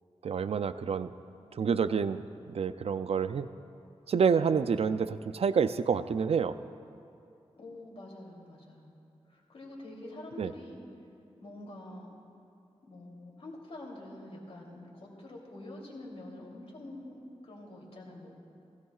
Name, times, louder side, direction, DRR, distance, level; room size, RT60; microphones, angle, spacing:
voice 1, 0.2-1.1 1.5-2.2 2.5-3.5 4.1-6.5 10.4-10.5, right 6 dB, 65° right, 12 dB, 0.4 m, -28 dB
voice 2, 7.6-8.9 9.3-10.8 11.4-12.1 12.8-18.4, left 1 dB, 65° left, -3 dB, 3.1 m, -46 dB
17.0 x 16.5 x 2.4 m, 2.6 s
cardioid pair, 65°, 11 cm